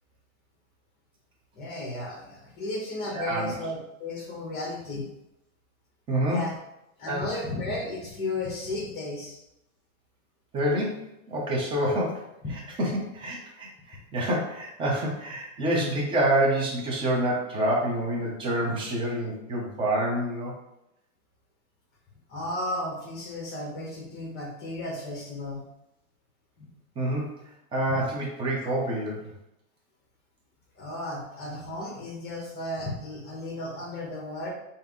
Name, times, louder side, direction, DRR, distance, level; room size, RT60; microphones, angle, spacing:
voice 1, 1.5-5.1 6.3-6.5 7.0-9.4 22.3-25.6 26.6-26.7 30.7-34.5, left 2 dB, 25° left, -3 dB, 1.3 m, -34 dB
voice 2, 3.1-3.5 6.1-6.4 7.1-7.3 10.5-12.3 12.8-20.5 27.0-29.2, right 1 dB, 15° right, -3 dB, 0.6 m, -27 dB
3.5 x 2.7 x 3.6 m, 0.87 s
supercardioid pair, 145°, 41 cm